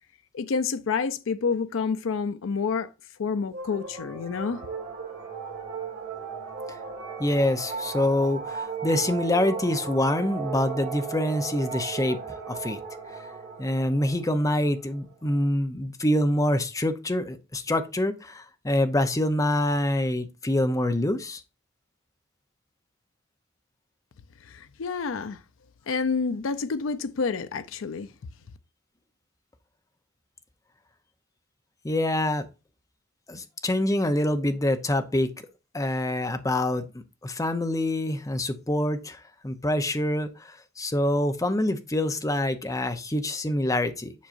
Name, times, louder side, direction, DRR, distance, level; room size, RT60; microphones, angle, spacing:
voice 1, 0.3-2.9 3.2-4.7 24.4-25.4 25.9-28.1, left 5 dB, 90° left, 0.5 m, -28 dB
sound 1, 3.5-15.4, right 5 dB, 60° right, 1.8 m, -36 dB
voice 2, 7.2-12.2 12.5-12.8 13.6-21.4 31.8-32.5 33.3-35.3 35.7-36.9 37.2-44.1, left 1 dB, 15° left, 0.7 m, -26 dB
7.4 x 5.4 x 2.5 m
head